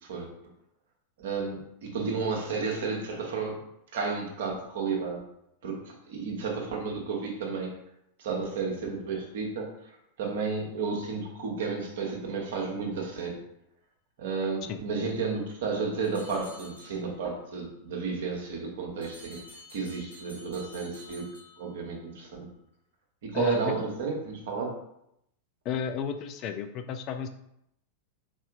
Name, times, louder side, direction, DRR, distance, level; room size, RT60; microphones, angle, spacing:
voice 1, 1.2-3.6 3.9-5.2 5.6-7.7 8.2-9.7 10.2-13.4 14.2-19.4 19.7-21.3 21.6-22.5 23.2-24.7, right 4 dB, 55° right, 0 dB, 1.1 m, -32 dB
sound 1, 16.0-17.4 19.0-22.0, left 1 dB, 80° left, 1.3 m, -50 dB
voice 2, 23.3-23.7 25.6-27.3, left 7 dB, 35° left, 8 dB, 0.3 m, -33 dB
4.5 x 2.8 x 3.6 m, 0.78 s
figure-of-eight pair, 90°, 0 cm